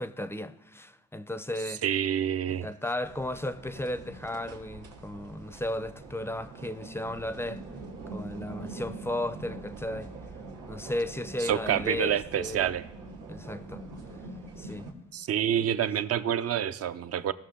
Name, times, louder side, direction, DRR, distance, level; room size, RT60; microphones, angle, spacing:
voice 1, 0.0-1.8 2.5-7.6 8.1-10.1 10.7-12.7 13.3-13.8 14.6-14.9 15.5-15.7, left 1 dB, 10° left, 0.5 m, -35 dB
voice 2, 1.8-2.7 11.5-12.9 15.1-17.3, right 9 dB, 55° right, 0.6 m, -27 dB
sound 1, 3.0-14.9, right 3 dB, 90° right, 2.1 m, -44 dB
17.0 x 6.4 x 3.7 m
cardioid pair, 90°, 30 cm